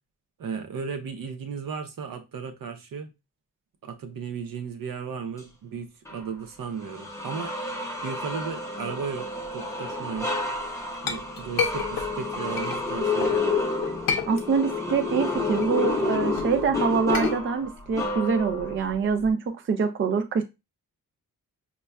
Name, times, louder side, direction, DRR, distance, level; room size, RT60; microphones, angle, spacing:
voice 1, 0.4-3.1 3.8-7.5 8.0-10.3 11.0-13.5, right 6 dB, 80° right, 0.7 m, -35 dB
sound 1, 6.1-6.2 6.8-18.8, left 3 dB, 10° left, 0.6 m, -29 dB
Chink clink, 10.5-13.4 13.8-14.9 15.2-19.3, left 6 dB, 75° left, 0.6 m, -32 dB
voice 2, 14.3-20.4, right 5 dB, 40° right, 0.4 m, -25 dB
5.2 x 2.3 x 2.2 m
wide cardioid pair, 165°, 34 cm